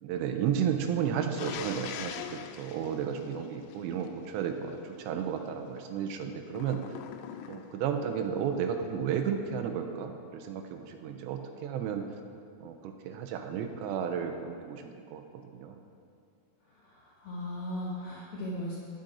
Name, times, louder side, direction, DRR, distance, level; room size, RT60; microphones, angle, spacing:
voice 1, 0.0-6.8 7.5-12.0 12.6-15.8, right 8 dB, 85° right, 5 dB, 3.0 m, -33 dB
sound 1, 1.4-4.1 6.5-7.9, left 10 dB, 90° left, 2.8 m, -42 dB
voice 2, 16.7-18.8, left 1 dB, 60° left, -4 dB, 1.9 m, -37 dB
18.5 x 6.5 x 4.3 m, 2.3 s
omnidirectional pair, 5.0 m